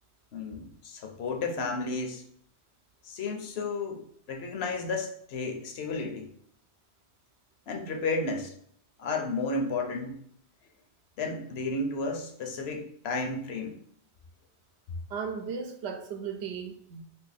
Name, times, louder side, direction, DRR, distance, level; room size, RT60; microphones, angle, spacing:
voice 1, 0.3-2.2 3.0-4.0 4.3-6.3 7.7-8.5 9.0-10.2 11.2-13.8, left 3 dB, 70° left, 3 dB, 0.9 m, -32 dB
voice 2, 15.1-17.0, right 6 dB, 75° right, 6 dB, 0.8 m, -36 dB
2.8 x 2.7 x 4.0 m, 0.65 s
omnidirectional pair, 1.1 m